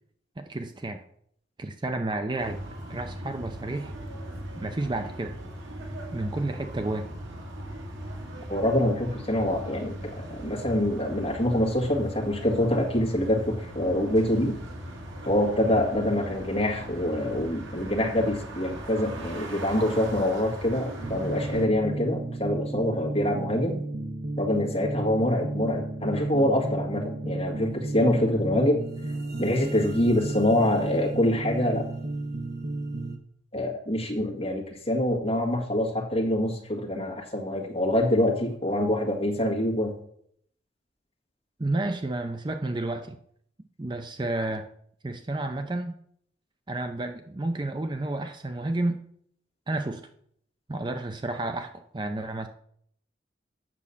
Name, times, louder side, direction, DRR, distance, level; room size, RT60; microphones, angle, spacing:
voice 1, 0.4-1.0 1.6-2.6 2.9-3.9 4.6-5.4 6.1-7.1 41.6-43.2 43.8-44.7 45.0-46.0 46.7-49.0 49.7-50.0 50.7-52.5, right 2 dB, 25° right, 7 dB, 0.5 m, -31 dB
sound 1, 2.4-21.7, right 1 dB, 85° right, 2.1 m, -39 dB
voice 2, 8.5-14.6 15.2-23.8 24.4-28.8 29.4-31.9 33.5-39.9, left 1 dB, 30° left, 0 dB, 1.8 m, -25 dB
sound 2, 21.0-33.2, right 2 dB, 60° right, 1.1 m, -33 dB
8.5 x 6.0 x 7.0 m, 0.67 s
head